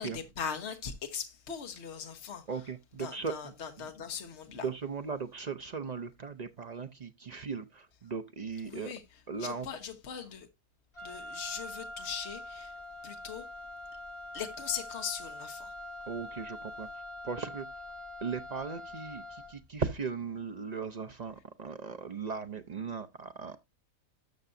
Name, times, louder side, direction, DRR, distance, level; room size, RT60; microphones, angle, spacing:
voice 1, 0.0-2.6 3.0-4.6 8.6-10.5 11.0-13.5 14.3-15.7, left 7 dB, 50° left, 1.3 m, -40 dB
voice 2, 2.5-3.9 4.6-8.9 9.3-9.7 16.1-17.7 18.2-23.6, right 5 dB, 55° right, 0.4 m, -38 dB
Wind instrument woodwind instrument, 10.9-19.7, left 1 dB, 20° left, 1.3 m, -44 dB
12.0 x 6.7 x 2.6 m
omnidirectional pair, 1.5 m